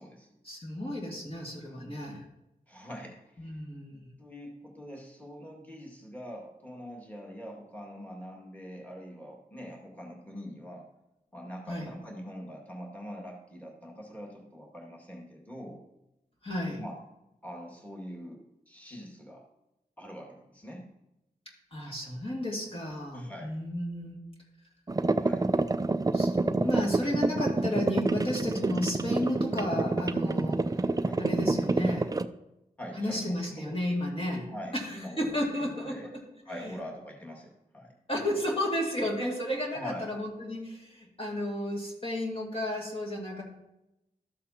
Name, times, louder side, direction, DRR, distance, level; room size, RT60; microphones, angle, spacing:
voice 1, 0.4-2.2 3.4-4.1 11.7-11.9 16.4-16.8 21.7-24.2 26.1-30.7 31.2-32.1 33.0-36.2 36.5-36.8 38.1-43.4, left 1 dB, 35° left, -2 dB, 2.3 m, -33 dB
voice 2, 2.7-3.6 3.9-10.9 11.3-15.8 16.8-17.0 17.4-19.4 20.0-20.8 23.1-23.6 25.1-25.5 31.1-31.2 32.8-33.8 34.5-36.1 36.5-37.9 39.7-40.1, equal, 10° left, -2 dB, 2.1 m, -44 dB
Electric coffee maker, 24.9-32.3, right 3 dB, 25° right, 0.4 m, -28 dB
13.0 x 7.3 x 2.9 m, 0.88 s
cardioid pair, 50°, 16 cm